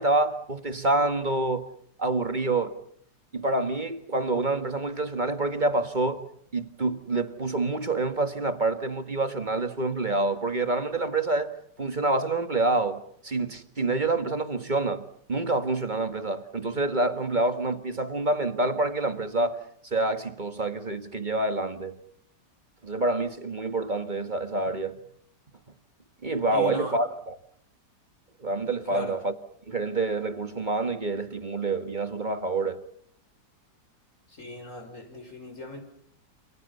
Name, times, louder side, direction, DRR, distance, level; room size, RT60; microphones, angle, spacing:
voice 1, 0.0-1.7 2.0-2.8 3.3-11.5 11.8-19.6 19.8-22.0 22.8-25.0 26.2-27.4 28.4-29.3 29.7-32.8, right 2 dB, 25° right, 1.7 m, -27 dB
voice 2, 26.5-27.0 28.9-29.1 34.3-35.8, equal, 40° left, 6.3 m, -37 dB
29.5 x 28.5 x 5.6 m
omnidirectional pair, 2.0 m